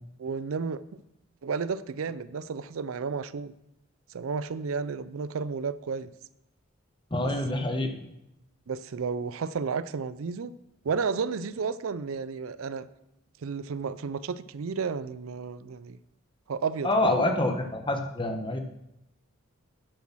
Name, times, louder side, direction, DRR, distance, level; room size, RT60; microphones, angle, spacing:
voice 1, 0.2-0.8 1.4-3.5 4.1-6.1 8.7-10.6 10.8-12.9 13.4-16.0 16.5-17.2, right 5 dB, 80° right, 16 dB, 0.5 m, -32 dB
voice 2, 7.1-8.0 16.8-18.6, left 2 dB, 25° left, 5 dB, 1.1 m, -26 dB
10.0 x 7.3 x 6.1 m, 0.85 s
head